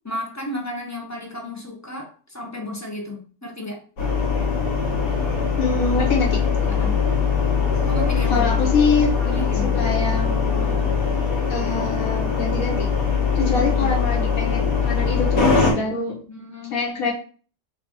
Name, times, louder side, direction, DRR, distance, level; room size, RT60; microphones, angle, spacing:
voice 1, 0.0-3.8 6.7-7.0 7.9-8.5 9.2-9.8 13.4-14.2 16.3-16.8, left 1 dB, 20° left, 1 dB, 0.4 m, -33 dB
sound 1, 4.0-15.7, left 6 dB, 80° left, 2.0 m, -21 dB
voice 2, 5.6-6.4 8.3-10.9 11.5-12.9 13.3-16.2 16.7-17.1, left 3 dB, 60° left, -1 dB, 1.7 m, -25 dB
4.2 x 2.6 x 4.3 m, 0.41 s
omnidirectional pair, 1.7 m